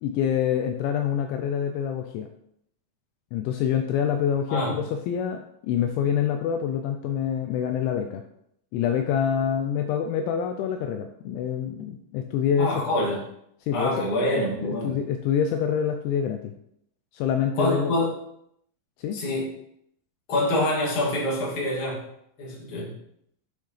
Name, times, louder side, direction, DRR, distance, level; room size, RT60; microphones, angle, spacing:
voice 1, 0.0-2.3 3.3-8.2 8.7-12.8 13.6-13.9 14.6-16.5 17.1-17.9 19.0-19.2, left 8 dB, 85° left, 5 dB, 2.8 m, -26 dB
voice 2, 12.6-13.2 13.7-15.0 17.5-18.1 19.1-19.5 20.3-22.0 22.4-22.9, left 1 dB, 40° left, -5 dB, 2.2 m, -26 dB
8.5 x 6.5 x 3.3 m, 0.74 s
omnidirectional pair, 5.6 m